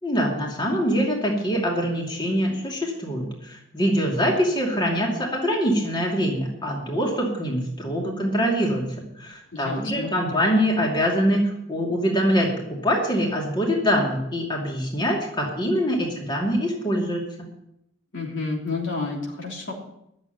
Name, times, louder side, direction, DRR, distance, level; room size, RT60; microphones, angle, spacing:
voice 1, 0.0-17.2, equal, 25° left, -1 dB, 2.6 m, -24 dB
voice 2, 9.5-10.1 18.1-19.7, left 3 dB, 75° left, -1 dB, 3.3 m, -30 dB
11.5 x 7.5 x 9.3 m, 0.79 s
head